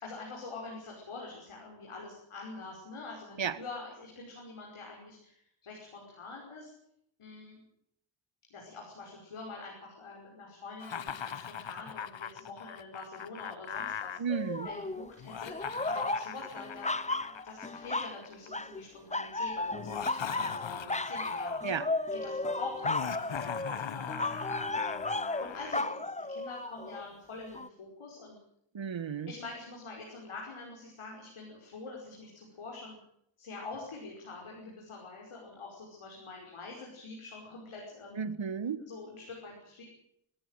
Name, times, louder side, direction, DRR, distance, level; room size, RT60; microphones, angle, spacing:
voice 1, 0.0-6.7 7.2-7.6 8.5-14.2 14.6-15.5 15.9-21.5 22.1-28.4 29.3-33.0 33.4-38.2 38.8-39.8, left 3 dB, 90° left, -2 dB, 5.7 m, -45 dB
Laughter, 10.8-14.2 15.2-18.5 19.7-21.7 22.8-25.8, left 8 dB, 65° left, 1.2 m, -40 dB
voice 2, 14.2-14.7 21.6-21.9 28.7-29.3 38.2-38.8, right 6 dB, 65° right, 15 dB, 1.6 m, -33 dB
sound 1, 14.3-15.1 15.5-18.2 18.5-18.8 19.1-27.0 27.5-27.7, left 2 dB, 15° left, 1.0 m, -34 dB
21.5 x 14.5 x 9.2 m, 0.73 s
cardioid pair, 65°, 49 cm